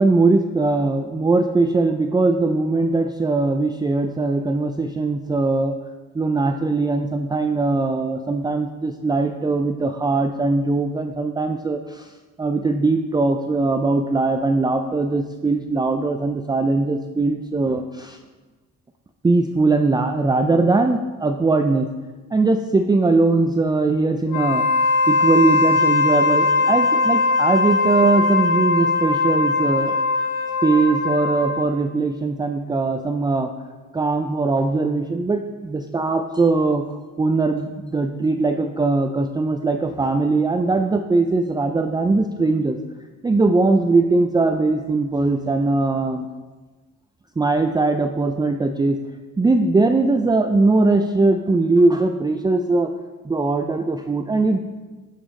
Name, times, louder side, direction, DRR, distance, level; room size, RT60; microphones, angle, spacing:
voice 1, 0.0-5.8 6.1-12.1 12.4-18.2 19.2-21.9 22.3-24.7 25.1-30.0 30.6-33.5 33.9-36.8 37.2-42.8 43.2-46.3 47.4-49.0 49.4-52.9 53.2-54.6, right 3 dB, 15° right, 6 dB, 0.4 m, -20 dB
Wind instrument woodwind instrument, 24.3-31.7, left 3 dB, 90° left, 0.9 m, -20 dB
9.0 x 7.1 x 3.7 m, 1.3 s
cardioid pair, 90°, 30 cm